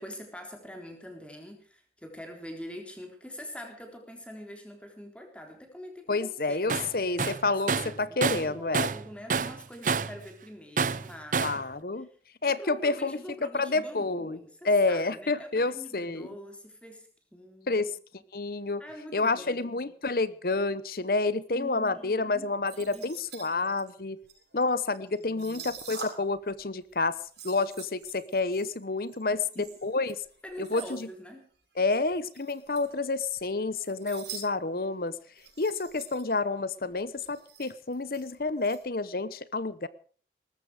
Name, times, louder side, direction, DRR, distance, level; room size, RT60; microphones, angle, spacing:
voice 1, 0.0-6.9 7.4-11.6 12.0-12.1 12.4-17.9 18.8-19.8 21.5-22.5 22.9-23.1 23.5-23.8 25.2-25.8 29.3-29.7 30.4-31.5, equal, 5° left, 3 dB, 3.8 m, -45 dB
voice 2, 6.1-8.9 11.4-12.1 12.4-14.4 14.6-16.3 17.7-17.9 18.3-18.8 19.1-24.2 24.5-27.2 27.4-30.2 30.6-31.1 31.8-35.2 35.6-39.9, left 3 dB, 55° left, 17 dB, 0.9 m, -29 dB
Tools, 6.7-6.9 7.2-9.0 9.3-10.2 10.8-11.6, right 5 dB, 45° right, 0.6 m, -28 dB
sound 1, 22.7-26.5 26.8-31.0 31.8-33.3 33.6-34.5 34.7-34.8 35.3-36.3 36.7-36.8 36.9-38.8, right 6 dB, 70° right, 7.0 m, -46 dB
19.5 x 14.0 x 4.9 m, 0.43 s
head